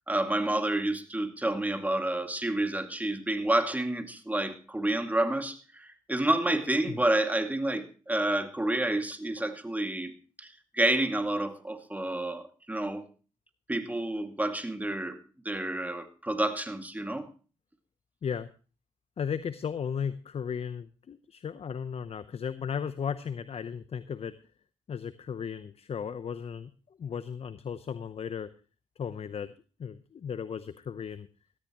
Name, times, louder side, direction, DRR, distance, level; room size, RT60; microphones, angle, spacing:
voice 1, 0.1-10.1 10.4-13.1 13.7-15.2 15.4-17.3, right 1 dB, 10° right, 6 dB, 2.2 m, -29 dB
voice 2, 19.2-24.4 24.9-26.7 27.0-28.5 29.0-29.5 29.8-31.3, left 7 dB, 50° left, 14 dB, 0.7 m, -35 dB
18.0 x 13.5 x 3.0 m, 0.37 s
supercardioid pair, 50°, 13 cm